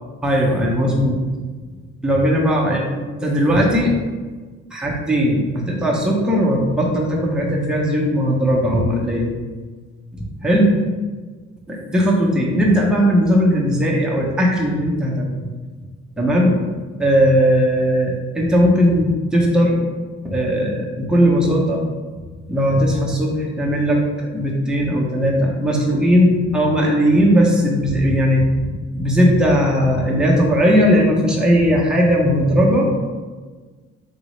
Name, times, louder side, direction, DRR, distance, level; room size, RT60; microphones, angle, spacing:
voice 1, 0.2-1.2 2.0-4.0 4.7-9.3 10.1-10.7 11.7-15.5 16.2-16.6 17.0-19.8 20.2-21.8 22.5-28.7 28.9-32.9, equal, 5° right, -2 dB, 0.5 m, -18 dB
3.6 x 2.0 x 3.0 m, 1.4 s
cardioid pair, 90°, 30 cm